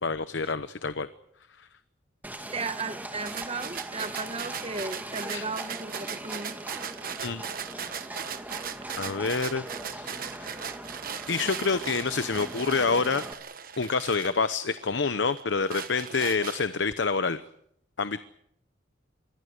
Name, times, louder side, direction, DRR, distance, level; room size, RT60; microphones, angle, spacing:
voice 1, 0.0-1.1 1.6-1.7 5.3-5.4 7.2-7.4 8.9-9.7 9.9-10.7 11.3-13.3 13.8-17.4 18.0-18.2, left 4 dB, 75° left, 12 dB, 0.9 m, -27 dB
Livestock farm animals working animals, 2.2-13.3, right 1 dB, 10° right, 2.2 m, -41 dB
voice 2, 2.5-6.6, right 3 dB, 30° right, 11 dB, 1.3 m, -35 dB
sound 1, 3.3-14.9 15.4-16.9, right 7 dB, 50° right, 1.3 m, -38 dB
26.5 x 22.0 x 6.6 m, 0.71 s
head